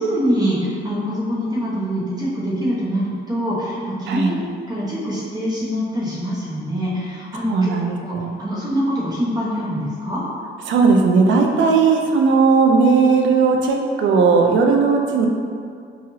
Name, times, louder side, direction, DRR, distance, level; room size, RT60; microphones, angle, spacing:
voice 1, 0.0-7.7 8.0-8.1 8.4-10.2, equal, 20° right, -8 dB, 0.9 m, -24 dB
voice 2, 7.5-8.3 10.7-15.3, right 4 dB, 70° right, 2 dB, 0.4 m, -16 dB
3.0 x 2.4 x 2.7 m, 2.2 s
cardioid pair, 90°, 20 cm